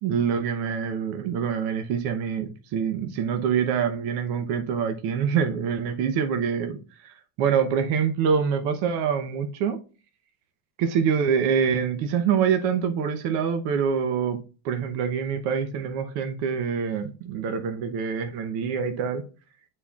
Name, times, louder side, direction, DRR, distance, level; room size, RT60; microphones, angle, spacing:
voice 1, 0.0-9.8 10.8-14.4 14.6-19.2, right 7 dB, 65° right, 1.0 m, -25 dB
9.2 x 4.4 x 2.4 m
cardioid pair, 150°, 42 cm